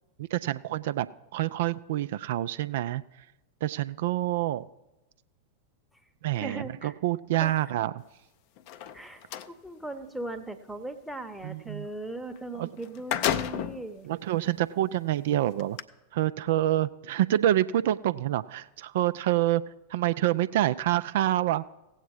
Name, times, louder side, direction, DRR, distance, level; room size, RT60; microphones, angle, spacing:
voice 1, 0.3-1.1 1.3-3.0 3.6-4.7 6.2-7.9 11.4-11.9 12.6-12.7 14.1-15.8 16.1-19.6 19.9-21.6, right 14 dB, 55° right, 14 dB, 0.3 m, -27 dB
voice 2, 6.3-6.9 7.4-7.5 8.9-14.1, right 2 dB, ahead, 11 dB, 0.9 m, -39 dB
sound 1, 8.6-9.5 12.4-12.5 12.8-13.9 14.5-14.6 15.6-15.8, left 10 dB, 45° left, 0.5 m, -31 dB
16.5 x 8.2 x 4.7 m, 0.99 s
figure-of-eight pair, 90°, 0 cm